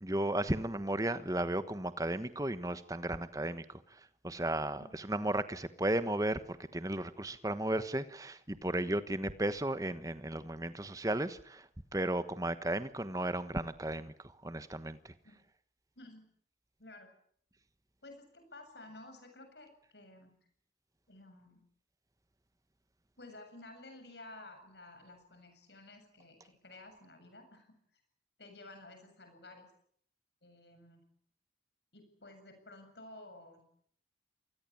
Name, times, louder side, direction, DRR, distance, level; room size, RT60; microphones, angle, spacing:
voice 1, 0.0-15.1, right 1 dB, 20° right, 12 dB, 1.2 m, -35 dB
voice 2, 16.8-17.1 18.0-20.4 21.1-21.6 23.2-28.0 28.4-29.7 30.4-31.1 31.9-33.6, left 2 dB, 80° left, 6 dB, 7.6 m, -53 dB
27.0 x 20.0 x 8.7 m, 0.66 s
head